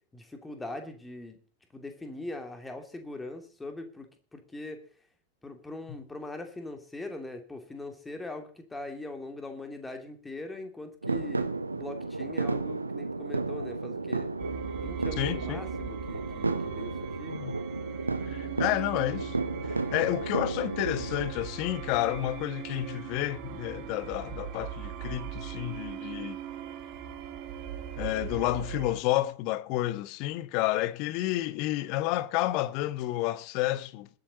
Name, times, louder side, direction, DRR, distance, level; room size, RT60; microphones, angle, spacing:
voice 1, 0.1-1.4 1.7-4.8 5.4-14.3 14.7-17.4, left 2 dB, 10° left, 2.8 m, -41 dB
sound 1, 11.0-21.3, right 3 dB, 80° right, 1.1 m, -33 dB
sound 2, 14.4-29.0, right 9 dB, 40° right, 2.7 m, -40 dB
voice 2, 15.2-15.6 17.3-17.6 18.3-19.4 19.7-26.4 28.0-34.1, left 15 dB, 45° left, 0.9 m, -30 dB
21.0 x 8.1 x 4.0 m
figure-of-eight pair, 90°, 0 cm